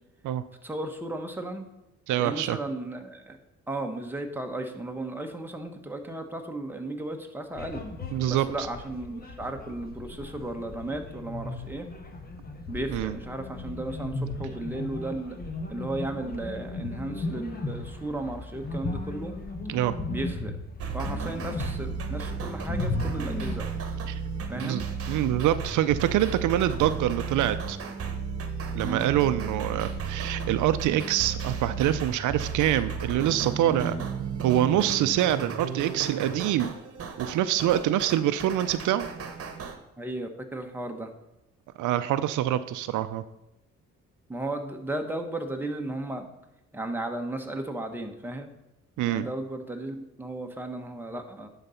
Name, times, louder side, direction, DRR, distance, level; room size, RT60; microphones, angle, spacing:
voice 1, 0.6-1.7 2.2-3.4 3.7-7.8 8.3-11.9 12.7-15.4 15.7-19.4 20.1-20.6 20.9-23.7 24.5-24.8 28.8-29.0 40.0-41.1 44.3-46.3 46.7-48.5 49.0-51.5, right 2 dB, 5° right, 3 dB, 1.1 m, -35 dB
voice 2, 2.1-2.6 8.1-8.7 12.9-13.1 19.7-19.9 24.1-24.2 24.5-24.8 25.1-27.8 28.7-33.9 34.4-36.7 37.2-39.1 41.8-43.2 49.0-49.3, right 12 dB, 80° right, 12 dB, 0.5 m, -25 dB
sound 1, 7.5-23.6, left 2 dB, 30° left, 1.3 m, -36 dB
sound 2, 20.8-39.8, right 5 dB, 50° right, 1.1 m, -34 dB
10.5 x 4.0 x 5.6 m, 0.88 s
cardioid pair, 90°, 30 cm